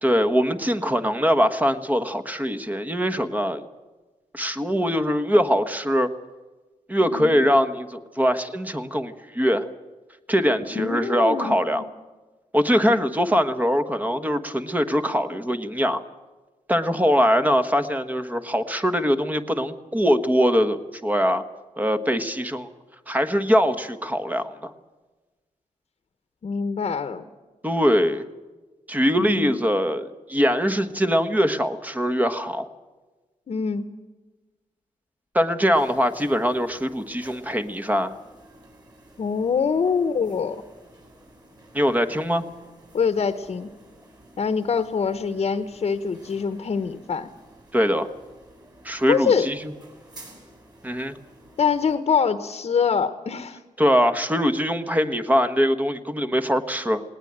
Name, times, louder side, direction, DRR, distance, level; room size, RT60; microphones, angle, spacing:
voice 1, 0.0-3.6 4.3-6.1 6.9-9.7 10.3-11.9 12.5-16.0 16.7-21.4 21.8-22.7 23.1-24.7 27.6-28.2 28.9-32.7 35.3-38.2 41.7-42.4 47.7-48.1 48.8-49.6 50.8-51.1 53.8-57.0, equal, 10° right, 8 dB, 1.3 m, -22 dB
voice 2, 7.1-7.4 10.7-11.8 26.4-27.2 29.2-29.6 33.5-33.9 39.2-40.6 42.9-43.7 44.4-47.3 49.1-49.5 51.6-53.6, left 6 dB, 50° left, 10 dB, 1.1 m, -24 dB
sound 1, 35.7-52.0, right 1 dB, 30° right, 7.2 m, -51 dB
19.5 x 19.0 x 8.8 m, 1.2 s
wide cardioid pair, 145°, 13 cm